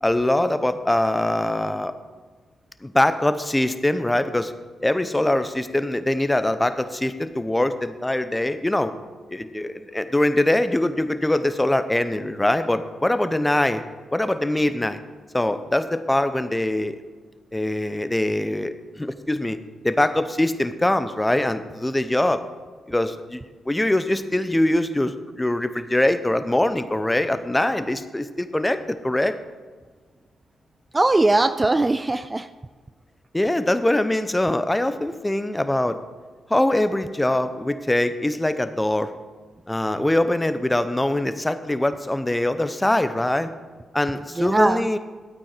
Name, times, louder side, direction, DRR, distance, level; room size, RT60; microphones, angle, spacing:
voice 1, 0.0-1.9 2.8-4.5 4.8-8.9 9.3-13.8 14.1-15.0 15.3-17.0 17.5-19.6 19.8-22.4 22.9-29.3 33.3-36.0 36.5-39.1 39.7-43.5 43.9-45.0, left 1 dB, 15° left, 11 dB, 0.9 m, -23 dB
voice 2, 30.9-32.5 44.4-44.9, right 2 dB, 25° right, 12 dB, 0.4 m, -20 dB
12.5 x 8.7 x 4.5 m, 1.4 s
supercardioid pair, 45°, 0 cm